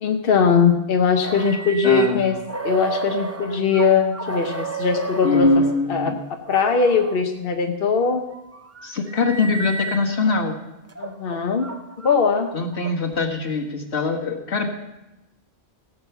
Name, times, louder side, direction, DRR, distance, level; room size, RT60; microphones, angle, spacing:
voice 1, 0.0-2.4 2.6-5.6 5.9-6.1 6.5-8.2 11.0-11.7 12.0-12.5, left 5 dB, 60° left, 4 dB, 1.0 m, -20 dB
sound 1, 1.2-5.8 6.5-7.2 8.0-10.4 10.9-13.3, right 4 dB, 20° right, 0.5 m, -33 dB
voice 2, 1.8-2.2 5.2-6.2 8.8-10.6 12.5-14.7, left 3 dB, 80° left, 1 dB, 1.9 m, -22 dB
17.0 x 6.2 x 7.0 m, 0.96 s
omnidirectional pair, 1.1 m